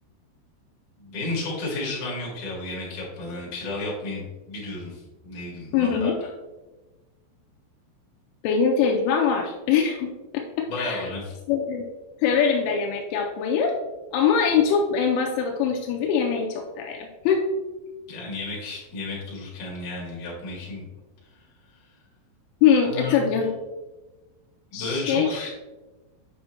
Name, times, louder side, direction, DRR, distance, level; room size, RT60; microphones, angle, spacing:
voice 1, 1.0-6.3 10.7-11.3 18.1-20.9 22.9-23.3 24.7-25.5, left 2 dB, 50° left, -5 dB, 3.1 m, -32 dB
voice 2, 5.7-6.1 8.4-11.1 11.5-11.8 12.2-13.8 14.1-17.4 22.6-23.5 24.7-25.3, left 7 dB, 85° left, 1 dB, 3.0 m, -23 dB
8.6 x 5.6 x 2.9 m, 1.2 s
omnidirectional pair, 5.7 m